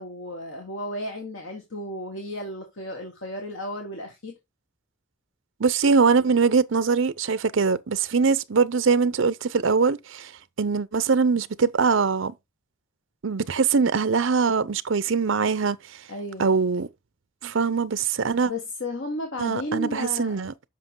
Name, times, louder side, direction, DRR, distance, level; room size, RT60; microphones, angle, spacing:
voice 1, 0.0-4.3 16.1-16.5 18.4-20.4, left 1 dB, 70° left, 1.6 m, -33 dB
voice 2, 5.6-10.3 10.6-12.3 13.2-15.8 16.4-16.9 17.4-18.5 19.4-20.5, right 5 dB, 70° right, 0.6 m, -22 dB
7.6 x 5.8 x 3.8 m
head